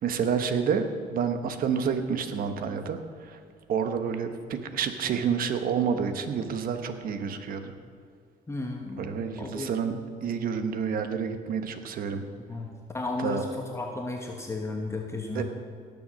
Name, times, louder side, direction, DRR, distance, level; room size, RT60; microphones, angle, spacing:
voice 1, 0.0-3.0 3.2-3.4 3.7-7.7 9.0-12.2 13.2-13.4 15.3-15.4, right 6 dB, 60° right, 8 dB, 1.2 m, -29 dB
voice 2, 8.5-9.1 9.4-9.7 12.5-12.7 12.9-15.4, left 2 dB, 15° left, 1 dB, 1.3 m, -33 dB
18.0 x 7.1 x 6.3 m, 2.1 s
cardioid pair, 110°, 17 cm